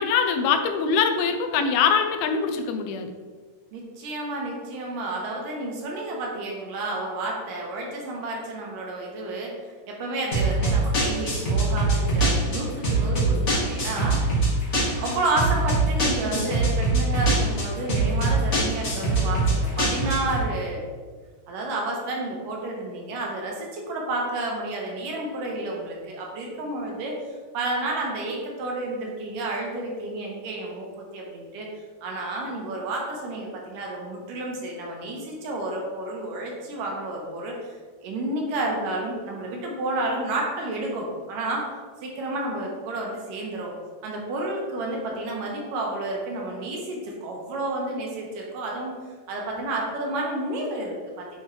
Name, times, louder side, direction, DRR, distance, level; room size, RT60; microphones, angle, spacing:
voice 1, 0.0-3.1, left 6 dB, 85° left, 6 dB, 2.5 m, -23 dB
voice 2, 3.7-14.5 15.0-20.8 21.5-27.2 27.5-31.7 32.0-37.8 38.0-41.7 42.0-43.7 44.0-48.9 49.3-51.4, right 2 dB, 70° right, -1 dB, 2.3 m, -30 dB
sound 1, 10.3-20.4, right 2 dB, 70° left, 0.7 m, -23 dB
9.5 x 4.4 x 3.2 m, 1.5 s
omnidirectional pair, 4.4 m